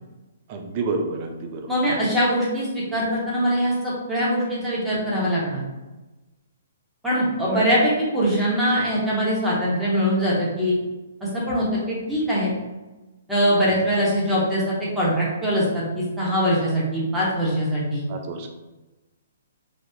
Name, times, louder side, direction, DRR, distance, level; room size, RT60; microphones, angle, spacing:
voice 1, 0.5-1.7 7.4-7.6 13.7-13.8 18.1-18.5, right 3 dB, 40° right, 4 dB, 0.5 m, -29 dB
voice 2, 1.7-5.6 7.0-10.7 11.2-12.5 13.3-18.0, equal, 5° right, -8 dB, 1.1 m, -22 dB
3.5 x 2.3 x 2.8 m, 1.1 s
hypercardioid pair, 140°, 0 cm